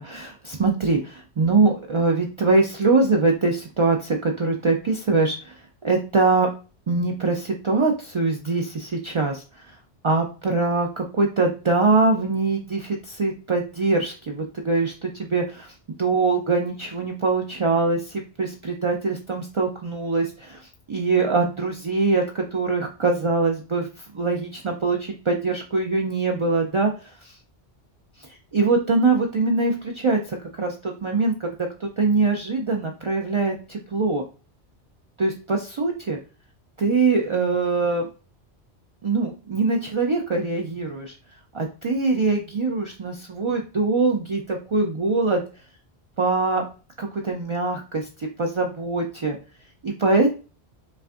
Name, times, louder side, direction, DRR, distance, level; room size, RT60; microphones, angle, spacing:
voice 1, 0.0-6.5 6.9-9.8 10.0-27.4 28.5-31.5 31.8-34.2 35.2-36.2 36.8-38.1 39.0-41.2 41.5-45.4 46.2-46.6 47.0-49.4 49.8-50.3, right 3 dB, 50° right, 2 dB, 0.3 m, -23 dB
5.5 x 2.5 x 2.4 m, 0.34 s
omnidirectional pair, 1.1 m